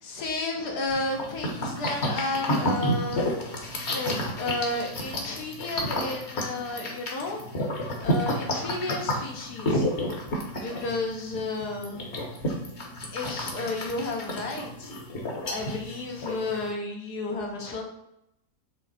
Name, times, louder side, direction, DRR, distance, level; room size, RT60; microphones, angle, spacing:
voice 1, 0.0-3.3 3.9-7.4 8.0-9.9 10.6-12.1 13.1-14.9 15.5-17.9, left 2 dB, 70° left, 1 dB, 1.8 m, -32 dB
sound 1, 0.9-16.7, equal, 45° left, 1.5 m, -31 dB
7.8 x 3.5 x 4.2 m, 0.81 s
omnidirectional pair, 1.8 m